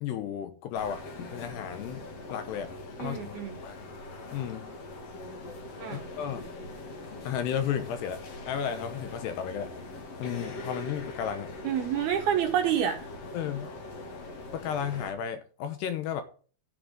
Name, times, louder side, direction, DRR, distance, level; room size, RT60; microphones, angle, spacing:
voice 1, 0.0-1.0 1.3-2.1 2.3-2.7 3.0-3.8 4.3-4.7 5.9-6.5 7.2-9.7 10.2-11.5 13.3-13.7 14.5-16.2, left 9 dB, 75° left, 2.5 m, -33 dB
sound 1, 0.7-15.1, left 2 dB, 55° left, 1.7 m, -42 dB
voice 2, 3.0-3.6 5.8-6.1 11.6-13.0, right 9 dB, 70° right, 2.5 m, -28 dB
11.5 x 7.8 x 3.7 m
omnidirectional pair, 5.9 m